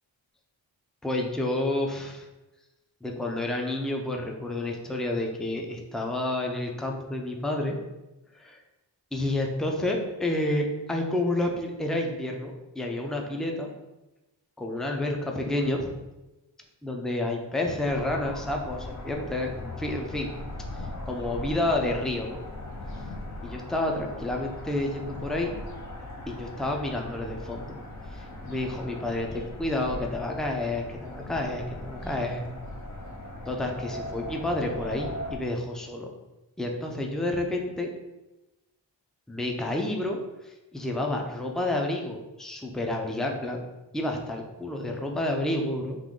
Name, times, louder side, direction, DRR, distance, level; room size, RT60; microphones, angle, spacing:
voice 1, 1.0-2.3 3.0-7.8 8.3-8.6 9.1-13.7 14.6-15.9 16.8-20.3 20.7-22.4 23.4-25.5 26.3-27.7 28.1-32.4 33.5-36.1 36.6-37.9 39.3-43.6 43.9-46.0, left 1 dB, ahead, 2 dB, 0.5 m, -30 dB
sound 1, 17.8-35.4, left 1 dB, 40° left, 0.7 m, -39 dB
3.7 x 2.6 x 3.7 m, 1.0 s
cardioid pair, 50°, 45 cm